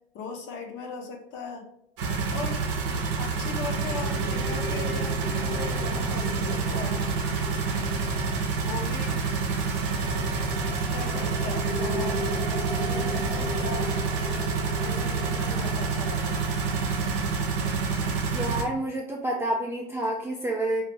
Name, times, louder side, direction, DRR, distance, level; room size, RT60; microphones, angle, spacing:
voice 1, 0.1-1.7 2.3-2.6 3.2-7.1 8.6-9.2 10.9-12.2 12.7-13.9 14.8-16.4, left 4 dB, 40° left, 2 dB, 0.8 m, -38 dB
sound 1, 2.0-18.6, right 4 dB, 65° right, 0.7 m, -28 dB
sound 2, 2.6-19.2, left 1 dB, 70° left, 0.9 m, -39 dB
voice 2, 18.2-20.8, right 1 dB, 10° right, -2 dB, 0.4 m, -29 dB
2.8 x 2.5 x 3.0 m, 0.67 s
hypercardioid pair, 85°, 29 cm